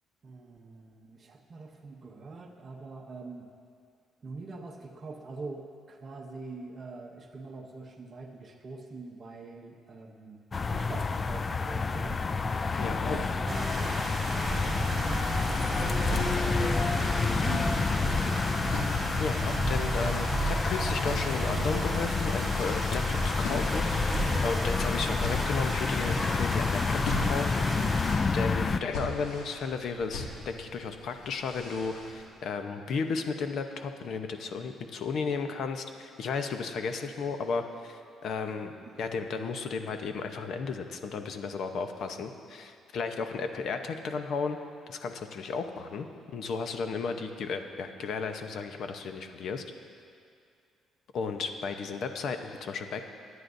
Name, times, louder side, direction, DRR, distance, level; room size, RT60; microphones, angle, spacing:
voice 1, 0.2-3.5 4.2-10.4 10.7-12.2 12.9-19.2 41.1-41.3, right 3 dB, 35° right, 2 dB, 0.8 m, -44 dB
sound 1, 10.5-28.8, left 4 dB, 25° left, 0.3 m, -29 dB
voice 2, 12.8-13.2 19.2-27.7 28.3-38.7 39.0-44.6 44.9-46.1 46.3-49.6 51.1-53.1, left 5 dB, 60° left, 6 dB, 0.8 m, -34 dB
sound 2, 13.5-28.2, right 2 dB, 20° right, 3.0 m, -34 dB
sound 3, 16.0-32.3, left 3 dB, 85° left, 2.1 m, -42 dB
23.0 x 9.7 x 2.7 m, 2.3 s
cardioid pair, 135°, 0 cm